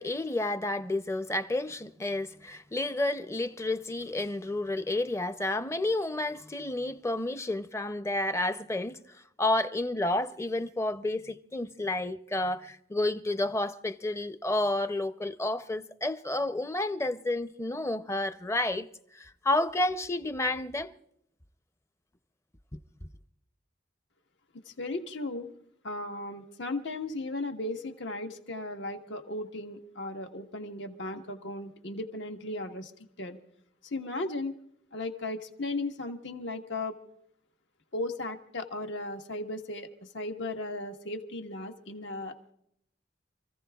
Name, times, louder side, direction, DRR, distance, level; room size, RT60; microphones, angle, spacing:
voice 1, 0.0-9.0 9.4-18.9 19.1-20.9, left 2 dB, 15° left, 0.5 m, -30 dB
voice 2, 24.6-25.5 25.8-32.9 33.2-33.4 33.8-34.5 34.9-37.0 37.9-42.5, left 2 dB, 80° left, 1.3 m, -36 dB
29.0 x 15.0 x 2.3 m
head